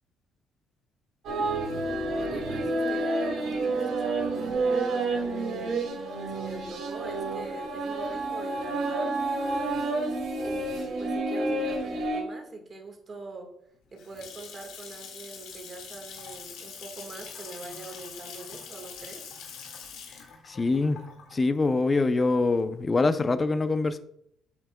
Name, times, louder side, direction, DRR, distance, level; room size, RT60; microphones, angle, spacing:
sound 1, 1.2-12.2, right 2 dB, 65° right, 2.2 m, -29 dB
voice 1, 2.2-5.8 6.3-9.4 10.4-13.5 13.9-19.2, right 3 dB, 30° right, 3 dB, 1.6 m, -43 dB
Water tap faucet / Sink (filling or washing) / Splash splatter, 13.7-22.6, left 6 dB, 85° left, 2.0 m, -44 dB
voice 2, 20.5-21.0 21.3-24.0, left 3 dB, 20° left, 11 dB, 0.5 m, -24 dB
8.4 x 7.8 x 2.2 m, 0.71 s
cardioid pair, 140°, 0 cm